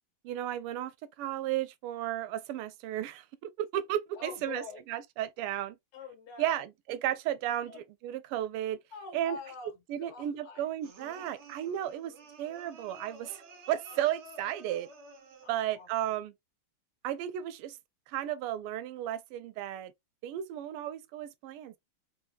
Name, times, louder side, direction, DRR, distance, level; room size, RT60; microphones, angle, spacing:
voice 1, 0.2-0.9 1.2-4.6 4.9-5.7 6.4-8.8 9.1-9.4 9.9-13.4 13.7-14.9 15.5-16.3 17.0-17.8 18.1-19.9 20.2-21.8, right 12 dB, 90° right, 1.5 m, -34 dB
voice 2, 4.1-4.8 5.9-6.7 7.7-7.8 8.9-10.7 12.5-12.6 13.9-14.0 15.4-16.1, left 5 dB, 85° left, 2.4 m, -46 dB
sound 1, 10.8-15.7, right 2 dB, 45° right, 0.9 m, -52 dB
4.3 x 3.2 x 2.2 m
omnidirectional pair, 2.4 m